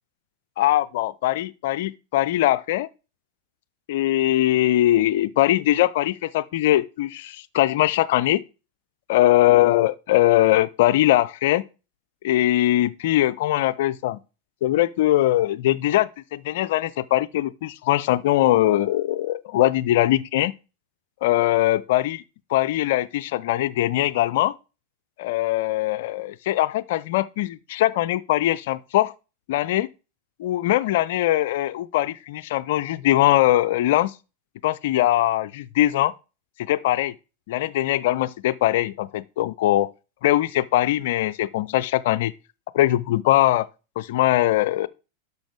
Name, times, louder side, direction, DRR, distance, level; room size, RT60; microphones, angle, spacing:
voice 1, 0.6-2.9 3.9-8.4 9.1-11.6 12.2-14.2 14.6-20.5 21.2-22.2 22.5-24.6 25.2-29.1 29.5-29.9 30.4-34.1 34.6-36.1 36.6-37.1 37.5-39.9 40.2-42.3 42.7-43.7 44.0-44.9, left 14 dB, 55° left, 0.4 m, -21 dB
11.5 x 6.8 x 3.4 m
figure-of-eight pair, 90°, 0 cm